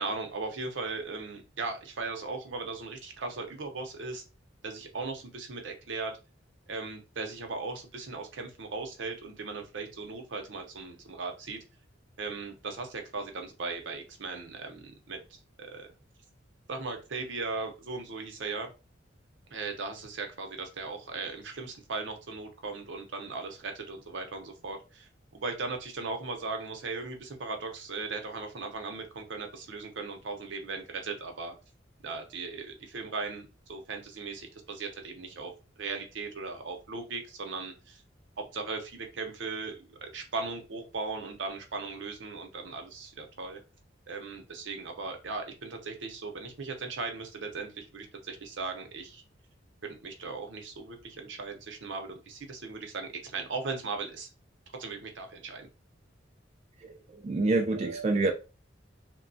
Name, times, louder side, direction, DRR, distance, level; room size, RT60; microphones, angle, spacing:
voice 1, 0.0-4.2 4.6-6.1 6.7-11.6 12.2-15.9 16.7-18.7 19.5-31.6 32.0-35.5 35.8-38.0 38.5-43.6 44.1-49.2 49.8-54.3 54.7-55.7, right 4 dB, 70° right, 0.6 m, -38 dB
voice 2, 56.8-58.3, right 3 dB, 35° right, 0.3 m, -27 dB
3.0 x 2.2 x 2.6 m
head